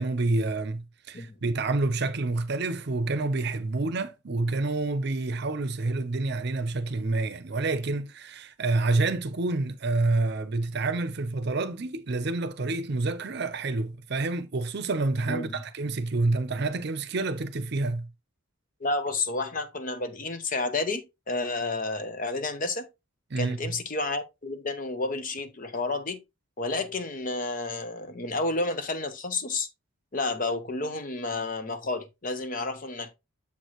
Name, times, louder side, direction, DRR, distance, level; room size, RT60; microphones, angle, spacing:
voice 1, 0.0-18.1 23.3-23.6, right 3 dB, 55° right, 0.6 m, -28 dB
voice 2, 18.8-22.9 23.4-26.2 26.6-29.7 30.1-33.1, left 3 dB, 40° left, 0.8 m, -31 dB
7.2 x 4.6 x 3.0 m
head